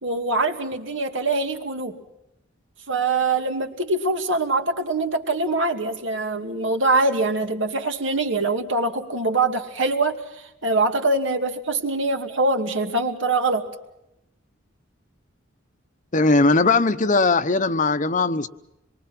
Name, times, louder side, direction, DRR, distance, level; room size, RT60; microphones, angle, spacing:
voice 1, 0.0-2.0 2.9-13.7, right 2 dB, 75° right, 5 dB, 2.5 m, -23 dB
voice 2, 16.1-18.5, left 3 dB, 40° left, 11 dB, 1.0 m, -19 dB
26.5 x 23.0 x 6.1 m, 0.87 s
head